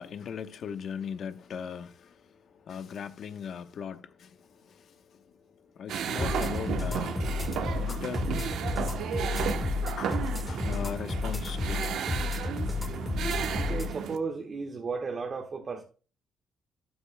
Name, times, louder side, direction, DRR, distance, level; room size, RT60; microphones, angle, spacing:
voice 1, 0.0-8.3 9.3-9.5 10.0-12.0 13.2-13.4, left 7 dB, 65° left, 1.0 m, -40 dB
sound 1, 5.9-14.2, right 8 dB, 75° right, 1.0 m, -33 dB
sound 2, 6.2-13.9, left 3 dB, 15° left, 1.7 m, -32 dB
voice 2, 13.5-15.8, right 4 dB, 40° right, 1.3 m, -34 dB
12.5 x 10.0 x 2.2 m
cardioid pair, 90°, 0 cm